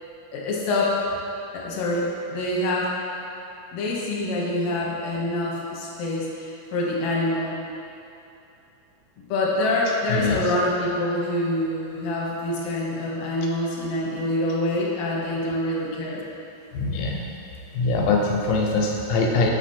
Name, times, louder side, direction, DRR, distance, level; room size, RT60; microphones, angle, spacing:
voice 1, 0.3-1.1 1.5-2.9 3.7-7.6 9.3-16.2, left 1 dB, 65° left, -4 dB, 1.5 m, -26 dB
voice 2, 10.1-10.5 16.7-17.3 17.7-19.5, left 3 dB, 85° left, 0 dB, 2.4 m, -23 dB
6.5 x 5.0 x 4.2 m, 2.7 s
omnidirectional pair, 3.8 m